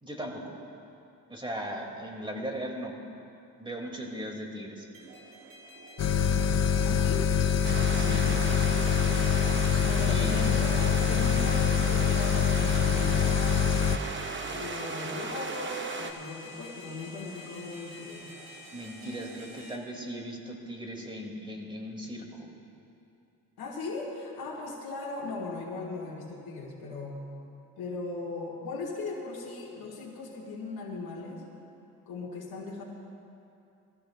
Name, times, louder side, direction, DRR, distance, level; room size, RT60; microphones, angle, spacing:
voice 1, 0.0-0.6 1.3-2.9 3.6-4.9 7.9-8.2 10.0-10.4 18.7-22.5, equal, 15° right, 1 dB, 2.0 m, -38 dB
sound 1, 4.9-19.8, left 1 dB, 65° right, 2.0 m, -47 dB
sound 2, 6.0-14.0, left 7 dB, 45° left, 0.6 m, -25 dB
voice 2, 6.8-7.3 8.0-8.6 9.8-13.7 14.5-18.3 23.6-27.2 27.8-31.4 32.1-32.8, left 3 dB, 80° left, -4 dB, 1.7 m, -38 dB
sound 3, 7.6-16.1, right 4 dB, 30° right, 0.8 m, -36 dB
20.5 x 15.0 x 2.2 m, 2.8 s
cardioid pair, 100°, 37 cm